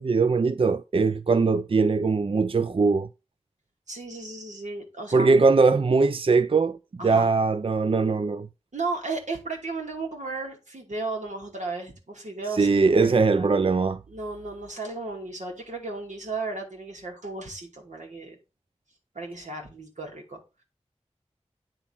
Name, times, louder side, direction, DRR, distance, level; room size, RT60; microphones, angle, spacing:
voice 1, 0.0-3.1 5.1-6.8 7.0-8.5 12.5-14.0, right 4 dB, 50° right, 0.4 m, -21 dB
voice 2, 3.9-5.4 7.0-7.3 8.7-13.6 14.1-18.4 19.1-20.4, right 3 dB, 90° right, 2.4 m, -35 dB
8.9 x 4.0 x 5.5 m
wide cardioid pair, 40°, 12 cm